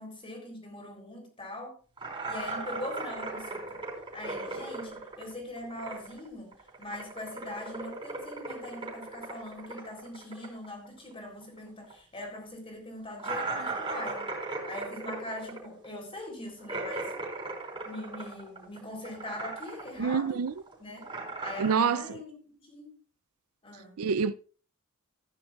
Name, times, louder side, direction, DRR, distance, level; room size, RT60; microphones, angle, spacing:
voice 1, 0.0-1.8 2.3-3.8 4.1-6.5 6.8-14.3 14.6-17.1 17.9-20.5 20.8-21.1 21.4-22.3 22.6-23.0 23.6-24.0, left 1 dB, 25° left, 3.6 m, -41 dB
sound 1, 2.0-6.3 6.5-11.6 11.8-11.9 12.3-12.4 13.2-18.8 19.0-20.0 20.3-21.7, right 3 dB, 25° right, 3.9 m, -38 dB
voice 2, 20.0-20.5 21.6-22.0 24.0-24.3, right 6 dB, 80° right, 0.5 m, -26 dB
15.0 x 9.8 x 2.4 m
head